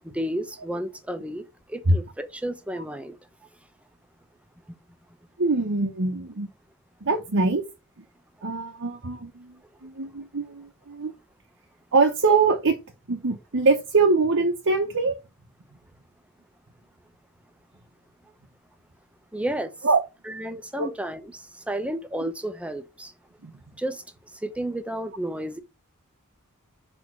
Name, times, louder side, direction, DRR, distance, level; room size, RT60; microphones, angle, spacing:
voice 1, 0.0-1.4 1.7-3.2 19.3-19.7 20.3-23.1 23.8-24.0 24.4-25.6, right 1 dB, 5° right, 0.8 m, -32 dB
voice 2, 5.4-6.5 7.0-7.6 8.4-9.5 9.8-11.1 11.9-12.8 13.1-15.2 19.8-20.0 20.8-20.9 23.4-23.6, right 3 dB, 60° right, 0.9 m, -23 dB
6.3 x 3.5 x 6.0 m
head